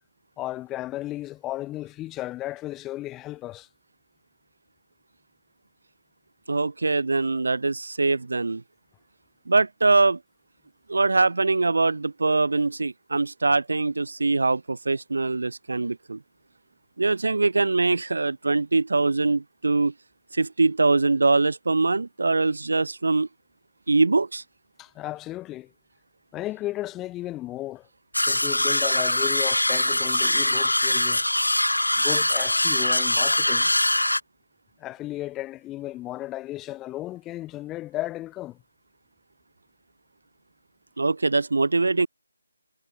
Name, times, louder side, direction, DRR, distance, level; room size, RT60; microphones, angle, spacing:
voice 1, 0.4-3.7 24.8-25.7 26.3-27.9 28.3-31.2 32.0-33.7 34.8-38.6, left 15 dB, 10° left, 3.7 m, -34 dB
voice 2, 6.5-8.6 9.5-10.2 10.9-16.2 17.0-19.9 20.3-23.3 23.9-24.4 41.0-42.1, right 3 dB, 60° right, 2.1 m, -23 dB
sound 1, 28.1-34.2, left 1 dB, 80° left, 2.5 m, -22 dB
figure-of-eight pair, 155°, 0 cm